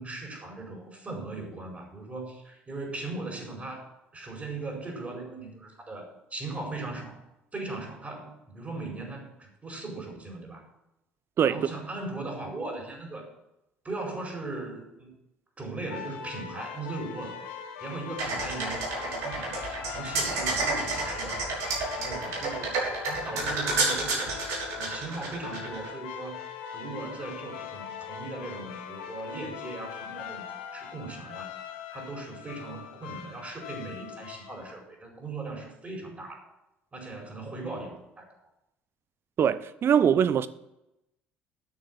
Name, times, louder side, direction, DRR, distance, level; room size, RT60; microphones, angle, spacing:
voice 1, 0.0-7.2 7.5-10.6 11.5-13.3 13.8-15.1 15.6-17.5 17.8-21.4 21.9-24.3 24.7-26.4 26.7-31.5 31.9-36.4 36.9-38.3, right 3 dB, 25° right, 4.8 m, -38 dB
sound 1, 15.9-34.7, left 8 dB, 75° left, 1.2 m, -41 dB
sound 2, 18.2-25.9, right 3 dB, 70° right, 3.6 m, -30 dB
voice 2, 39.4-40.5, right 8 dB, 45° right, 0.7 m, -22 dB
9.1 x 6.7 x 7.7 m
hypercardioid pair, 60°, 5 cm